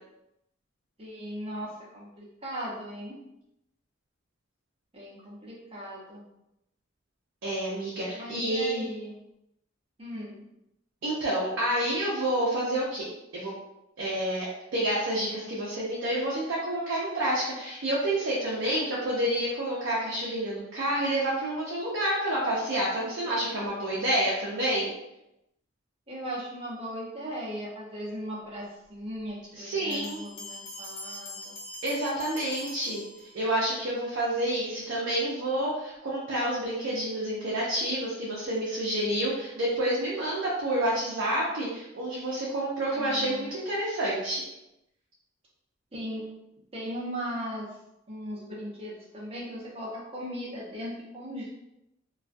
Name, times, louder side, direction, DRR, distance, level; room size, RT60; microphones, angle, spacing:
voice 1, 1.0-3.2 4.9-6.2 8.1-9.2 10.0-10.4 26.1-31.5 42.9-43.5 45.9-46.3 46.7-47.7 48.1-51.5, equal, 30° right, -5 dB, 0.7 m, -38 dB
voice 2, 7.4-8.9 11.0-13.5 14.0-14.5 14.7-24.9 29.5-30.2 31.8-33.0 33.3-44.4, right 1 dB, 65° right, -6 dB, 0.6 m, -29 dB
Bell, 29.9-33.7, left 1 dB, 30° left, 0.4 m, -43 dB
2.3 x 2.3 x 2.5 m, 0.87 s
head